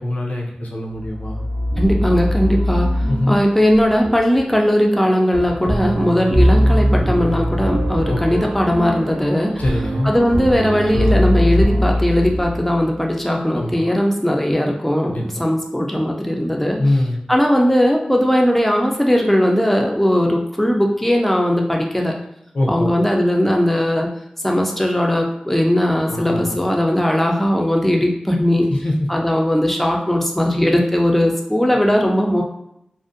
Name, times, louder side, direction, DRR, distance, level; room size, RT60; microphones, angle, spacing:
voice 1, 0.0-1.4 3.1-3.4 8.1-8.2 9.6-10.1 13.5-13.9 15.1-15.2 16.8-17.2 22.5-22.9 26.1-26.5 28.7-28.9, left 1 dB, 75° left, -1 dB, 0.6 m, -22 dB
sound 1, 0.9-13.0, equal, 70° right, 0.3 m, -21 dB
voice 2, 1.8-2.9 3.3-9.5 10.0-16.8 17.3-22.1 22.7-24.1 24.4-28.7 29.1-32.4, equal, 5° left, 1 dB, 0.4 m, -18 dB
2.5 x 2.1 x 2.5 m, 0.79 s
wide cardioid pair, 45°, 3 cm